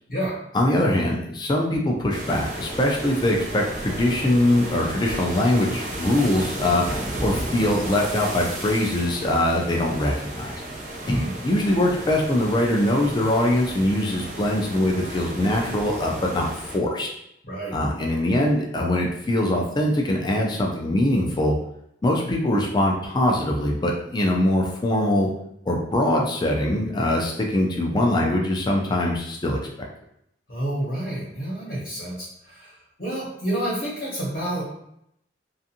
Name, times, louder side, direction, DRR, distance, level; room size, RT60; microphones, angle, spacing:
voice 1, 0.5-10.6 11.1-17.1 17.7-21.5 22.0-25.3 25.7-29.6, left 1 dB, 25° left, -1 dB, 0.4 m, -22 dB
sound 1, 2.1-16.8, right 1 dB, 40° right, 0.6 m, -33 dB
voice 2, 17.4-17.7 30.5-32.7 33.0-34.6, right 1 dB, 50° left, -7 dB, 1.0 m, -29 dB
2.5 x 2.4 x 2.7 m, 0.76 s
head